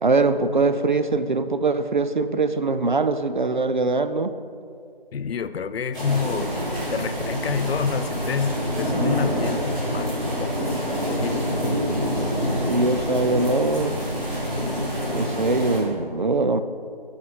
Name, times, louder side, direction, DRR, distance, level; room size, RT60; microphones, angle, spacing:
voice 1, 0.0-4.3 12.7-14.0 15.1-16.6, right 3 dB, 55° right, 11 dB, 0.4 m, -22 dB
voice 2, 5.1-6.5 6.9-10.7 11.1-11.4, left 6 dB, 80° left, 13 dB, 0.5 m, -28 dB
sound 1, 5.9-15.8, equal, 5° right, 1.6 m, -26 dB
7.9 x 4.9 x 5.0 m, 2.3 s
figure-of-eight pair, 175°, 30 cm